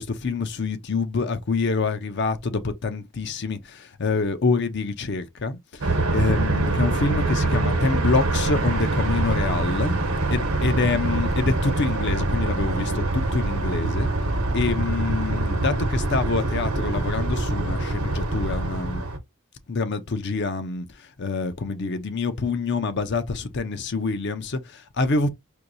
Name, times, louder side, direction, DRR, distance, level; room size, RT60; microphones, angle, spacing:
voice 1, 0.0-10.0 10.3-14.1 14.5-19.0 19.7-25.3, left 4 dB, 55° left, 0.6 m, -26 dB
sound 1, 5.8-19.2, right 2 dB, 85° right, 0.9 m, -24 dB
4.5 x 2.7 x 2.6 m
head